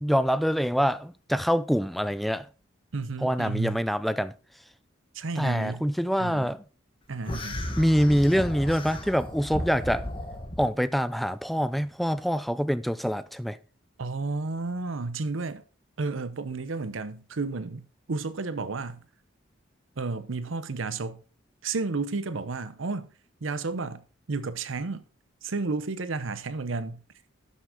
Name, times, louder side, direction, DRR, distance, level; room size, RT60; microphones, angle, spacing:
voice 1, 0.0-2.4 3.2-4.3 5.4-6.6 7.8-10.0 10.6-13.6, equal, ahead, 0.3 m, -25 dB
voice 2, 2.9-3.8 5.1-5.9 6.2-6.5 7.1-7.7 14.0-15.6 16.0-19.0 20.0-21.2 21.6-23.1 23.4-24.0 24.3-25.0 25.4-27.0, right 3 dB, 75° right, 0.7 m, -32 dB
sound 1, 7.2-10.7, left 1 dB, 25° left, 1.3 m, -34 dB
11.5 x 6.2 x 3.7 m
head